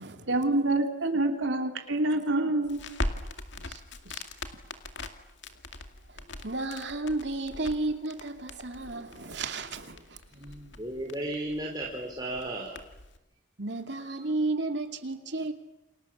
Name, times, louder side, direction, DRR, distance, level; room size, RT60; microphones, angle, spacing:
voice 1, 0.0-2.8, right 2 dB, 80° right, 3.2 m, -27 dB
Crackle, 2.6-13.2, left 2 dB, 65° left, 2.3 m, -41 dB
voice 2, 3.6-4.2 6.1-10.2 13.6-15.5, right 2 dB, 60° right, 2.6 m, -33 dB
voice 3, 10.3-12.7, right 1 dB, 20° right, 3.7 m, -35 dB
29.5 x 27.0 x 7.4 m
head